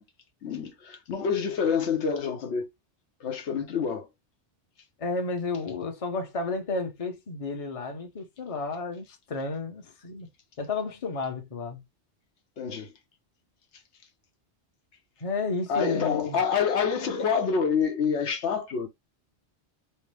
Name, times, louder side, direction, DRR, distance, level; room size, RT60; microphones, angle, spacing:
voice 1, 0.4-2.7 3.2-4.1 12.6-12.9 15.7-18.9, left 6 dB, 85° left, 1.1 m, -27 dB
voice 2, 5.0-10.3 10.6-11.8 15.2-16.4, left 4 dB, 35° left, 0.8 m, -32 dB
4.3 x 2.1 x 3.3 m
omnidirectional pair, 1.1 m